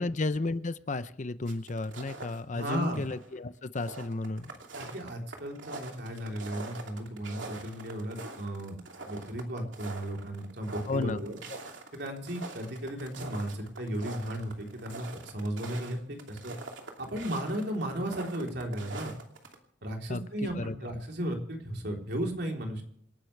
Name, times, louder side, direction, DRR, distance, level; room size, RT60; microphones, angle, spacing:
voice 1, 0.0-4.5 10.9-11.2 20.1-20.2 20.6-20.7, left 2 dB, 40° left, 13 dB, 0.7 m, -33 dB
sound 1, 1.5-2.4 2.7-3.4 3.6-19.6, right 3 dB, 80° right, 2.8 m, -44 dB
voice 2, 2.5-3.0 4.8-8.8 9.0-11.4 11.9-16.5 17.0-19.2 19.8-22.8, right 1 dB, 60° right, 2 dB, 3.7 m, -35 dB
27.5 x 11.5 x 3.4 m, 0.70 s
head